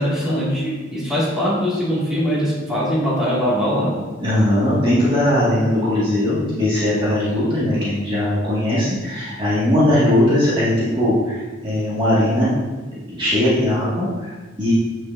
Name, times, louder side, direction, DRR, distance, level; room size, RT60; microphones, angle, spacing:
voice 1, 0.0-4.0, equal, 5° right, -9 dB, 2.2 m, -21 dB
voice 2, 4.2-12.5 13.1-14.8, left 1 dB, 25° right, -10 dB, 1.9 m, -19 dB
8.1 x 6.1 x 2.6 m, 1.2 s
head